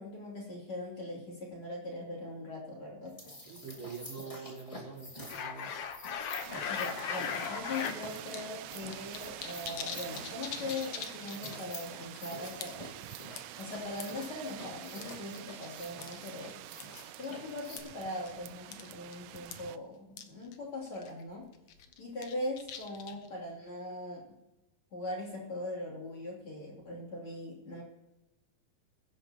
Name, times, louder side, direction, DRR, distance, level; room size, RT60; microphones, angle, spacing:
voice 1, 0.0-3.2 6.7-13.1 13.6-16.6 17.2-21.5 22.0-24.4 24.9-27.8, left 2 dB, 40° left, -3 dB, 3.6 m, -40 dB
sound 1, 3.0-17.8, left 1 dB, 15° left, 1.7 m, -48 dB
voice 2, 3.5-5.7, right 5 dB, 60° right, -4 dB, 6.0 m, -45 dB
sound 2, 5.3-8.0 8.3-8.4 8.7-11.7 12.0-12.2 12.6-12.9 13.4-14.2 15.0-15.7 16.0-16.2 16.8-17.0 17.8-17.9 18.3-18.4 18.7-18.9 19.1-19.2 19.5-19.6 20.2-20.3 20.5-20.6 21.0-21.2 21.7-23.3, left 8 dB, 65° left, 1.6 m, -39 dB
sound 3, 6.4-19.8, right 14 dB, 85° right, 1.6 m, -47 dB
22.5 x 10.5 x 3.0 m, 0.99 s
omnidirectional pair, 3.9 m